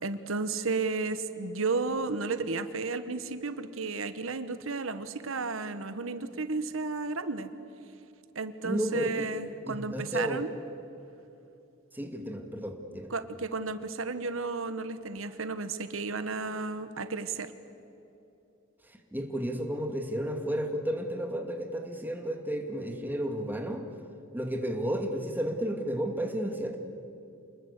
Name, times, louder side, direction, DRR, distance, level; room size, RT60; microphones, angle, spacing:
voice 1, 0.0-7.5 8.3-10.5 13.1-17.5, right 3 dB, 85° right, 11 dB, 1.3 m, -33 dB
voice 2, 8.6-9.2 9.7-10.4 11.9-13.1 19.1-23.8 24.3-26.8, right 1 dB, 10° right, 3 dB, 2.2 m, -32 dB
28.5 x 20.5 x 8.3 m, 2.8 s
head